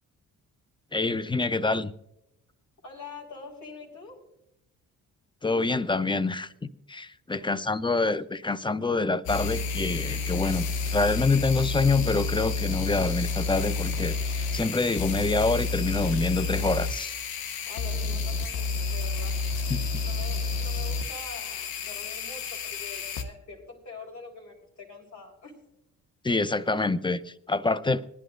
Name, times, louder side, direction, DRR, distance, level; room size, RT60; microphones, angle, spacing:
voice 1, 0.9-1.9 5.4-17.2 19.7-20.0 26.2-28.0, left 3 dB, 15° left, 0.6 m, -26 dB
voice 2, 2.8-4.2 7.3-7.8 17.6-19.4 20.0-25.6, left 4 dB, 50° left, 4.4 m, -44 dB
sound 1, 9.3-23.2, left 4 dB, 75° left, 1.1 m, -30 dB
20.0 x 11.0 x 2.6 m
supercardioid pair, 60°, 36 cm